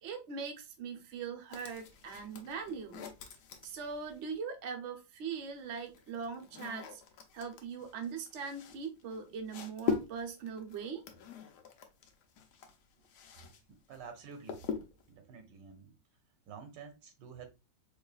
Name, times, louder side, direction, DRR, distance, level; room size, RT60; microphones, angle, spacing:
voice 1, 0.0-3.0 3.6-7.0 7.3-11.0, right 6 dB, 55° right, 0.8 m, -41 dB
sound 1, 1.5-4.4 5.4-13.6 13.9-15.1, left 6 dB, 70° left, 1.2 m, -42 dB
voice 2, 13.7-14.6 15.1-16.0 16.5-17.5, right 6 dB, 80° right, 1.5 m, -49 dB
4.6 x 2.5 x 2.3 m
omnidirectional pair, 1.9 m